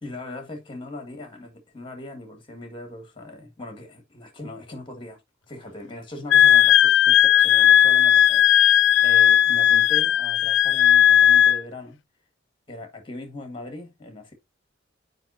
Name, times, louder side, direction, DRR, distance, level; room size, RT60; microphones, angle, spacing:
voice 1, 0.0-5.2 5.5-12.0 12.7-14.3, left 2 dB, 25° left, 1.7 m, -39 dB
Wind instrument woodwind instrument, 6.3-11.6, left 10 dB, 65° left, 0.4 m, -16 dB
7.7 x 5.0 x 2.7 m
head